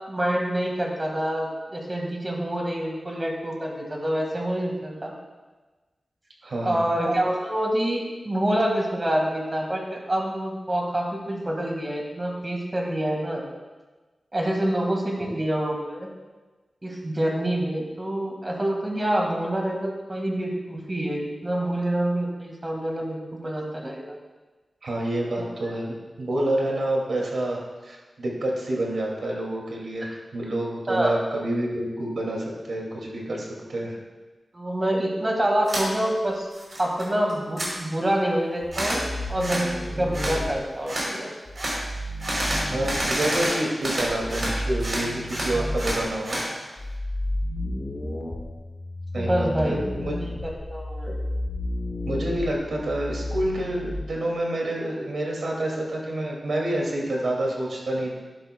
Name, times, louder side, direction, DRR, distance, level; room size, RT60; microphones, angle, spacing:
voice 1, 0.1-5.1 6.6-13.4 14.3-16.1 16.8-24.2 25.4-25.5 30.0-30.1 30.9-31.1 33.6-33.7 34.5-36.5 36.8-39.7 40.0-41.3 45.5-45.6 49.2-49.8 50.4-51.1, right 1 dB, 25° right, 0 dB, 1.8 m, -26 dB
voice 2, 6.4-6.9 24.8-33.9 42.6-46.4 49.1-50.1 52.1-58.1, right 1 dB, 80° right, -2 dB, 2.4 m, -28 dB
sound 1, 35.7-35.9 36.3-37.0 37.3-37.7 38.7-39.0 39.4-39.7 40.1-40.4 40.9-41.1 41.6-41.8 42.2-44.5 44.8-46.5, right 1 dB, 50° right, 3.5 m, -28 dB
sound 2, 38.6-40.5 41.5-43.1 44.0-46.0 46.8-54.0, left 1 dB, 40° left, 1.0 m, -32 dB
12.0 x 11.5 x 2.3 m, 1.2 s
wide cardioid pair, 130°, 0 cm